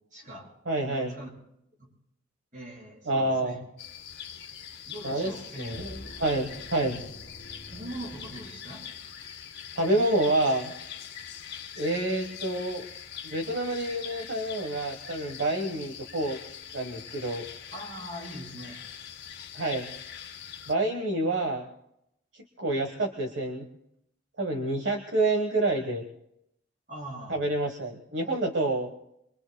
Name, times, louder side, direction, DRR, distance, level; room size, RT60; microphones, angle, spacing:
voice 1, 0.1-0.5 0.8-1.3 1.8-1.9 2.5-3.6 4.9-5.8 7.7-8.8 17.7-18.8 26.9-27.4, right 1 dB, 40° right, -2 dB, 6.6 m, -41 dB
voice 2, 0.7-1.1 3.1-3.6 5.0-7.0 9.8-10.7 11.8-12.9 13.2-16.4 16.7-17.5 19.5-19.9 20.7-21.7 22.6-23.7 24.4-26.0 27.3-28.9, right 2 dB, 70° right, 3 dB, 1.3 m, -28 dB
sound 1, 3.8-20.7, left 8 dB, 60° left, 1.7 m, -43 dB
sound 2, 5.7-9.2, equal, 35° left, 1.1 m, -47 dB
25.0 x 23.0 x 2.2 m, 0.79 s
head